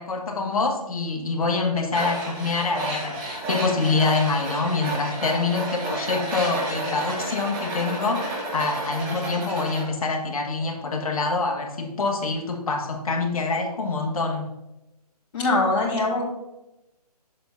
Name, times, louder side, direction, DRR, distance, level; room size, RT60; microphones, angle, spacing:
voice 1, 0.0-14.5, left 3 dB, 65° left, 1 dB, 1.7 m, -26 dB
Tools, 1.9-9.9, right 2 dB, 15° right, 1.2 m, -31 dB
voice 2, 15.3-16.2, left 2 dB, 35° left, -7 dB, 2.7 m, -22 dB
7.7 x 7.1 x 2.7 m, 0.93 s
hypercardioid pair, 155°, 20 cm